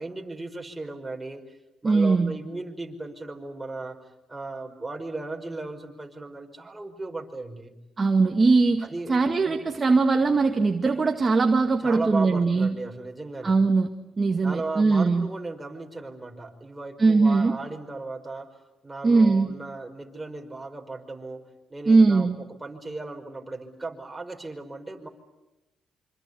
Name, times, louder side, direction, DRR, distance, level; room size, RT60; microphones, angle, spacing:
voice 1, 0.0-1.4 1.8-4.0 4.3-7.8 8.8-9.1 9.5-9.7 11.8-13.6 14.4-18.5 18.8-21.4 21.7-25.1, right 3 dB, 15° right, 3 dB, 5.3 m, -36 dB
voice 2, 1.8-2.3 8.0-12.8 13.4-13.9 14.2-15.3 17.0-17.5 19.0-19.5 21.9-22.4, right 3 dB, 30° right, 4 dB, 2.0 m, -20 dB
26.5 x 26.0 x 8.4 m, 0.97 s
cardioid pair, 90°, 0 cm